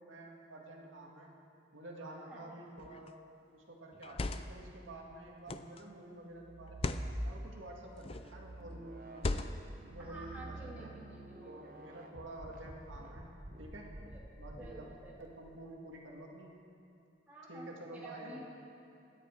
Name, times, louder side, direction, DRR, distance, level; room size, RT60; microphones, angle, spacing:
voice 1, 0.0-1.3 1.7-3.2 3.5-9.5 9.9-10.9 11.4-13.9 14.4-14.9 15.2-16.7 17.5-18.4, right 1 dB, 90° right, -1 dB, 2.0 m, -50 dB
voice 2, 2.0-2.6 10.0-11.7 14.0-15.3 17.3-18.5, right 1 dB, 10° right, -7 dB, 3.0 m, -51 dB
sound 1, 2.8-3.1 3.9-4.7 5.5-5.8 6.7-7.1 8.0-8.4 9.1-9.8, left 2 dB, 30° left, 0.5 m, -37 dB
sound 2, 6.3-7.7 8.2-15.1, right 1 dB, 50° right, 1.3 m, -47 dB
26.0 x 9.8 x 4.7 m, 2.7 s
head